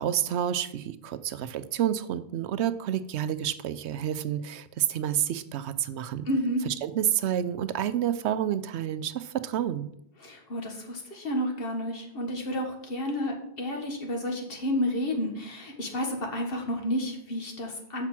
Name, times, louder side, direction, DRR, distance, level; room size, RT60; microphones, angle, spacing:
voice 1, 0.0-6.3 6.7-9.9, right 10 dB, 80° right, 13 dB, 0.9 m, -29 dB
voice 2, 6.3-6.6 10.2-18.1, equal, 60° left, 2 dB, 1.6 m, -31 dB
6.7 x 6.0 x 5.9 m, 0.76 s
omnidirectional pair, 1.1 m